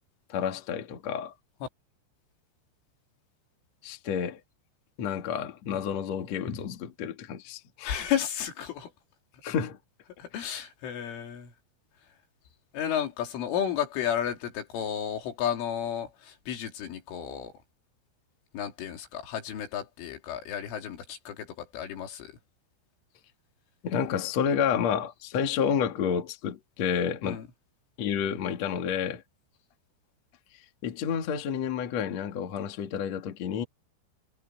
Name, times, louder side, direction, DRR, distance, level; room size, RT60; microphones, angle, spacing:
voice 1, 0.3-1.3 3.8-4.4 5.0-8.1 9.4-9.8 10.3-10.4 23.8-27.4 28.0-29.2 30.8-33.6, left 7 dB, 50° left, 2.5 m, -30 dB
voice 2, 7.8-8.9 10.2-11.5 12.7-17.5 18.5-22.3 27.2-27.4, left 9 dB, 85° left, 5.5 m, -32 dB
omnidirectional pair, 5.5 m